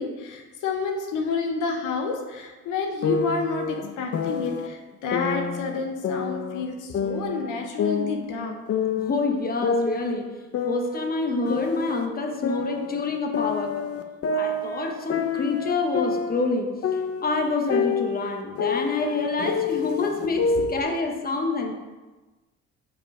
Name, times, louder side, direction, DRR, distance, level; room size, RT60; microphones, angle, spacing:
voice 1, 0.0-8.6 20.5-20.7, left 4 dB, 85° left, 3 dB, 0.9 m, -29 dB
sound 1, 3.0-4.7 5.1-6.7 6.9-9.2 9.6-12.1 12.4-16.5 16.8-20.8, left 5 dB, 50° left, 0.6 m, -28 dB
voice 2, 9.0-10.3 10.6-13.9 14.3-16.7 17.2-21.7, left 3 dB, 30° left, 3 dB, 1.0 m, -27 dB
5.4 x 4.7 x 4.8 m, 1.2 s
cardioid pair, 90°, 30 cm